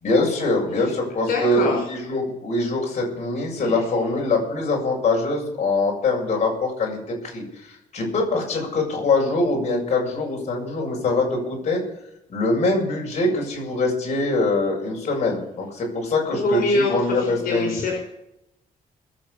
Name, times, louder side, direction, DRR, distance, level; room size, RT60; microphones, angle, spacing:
voice 1, 0.0-11.8 12.3-17.7, left 2 dB, 50° left, -1 dB, 7.4 m, -23 dB
voice 2, 1.3-1.9 3.6-3.7 16.4-18.0, left 2 dB, 75° left, 1 dB, 5.0 m, -24 dB
22.0 x 7.9 x 7.0 m, 0.83 s
cardioid pair, 130°, 15 cm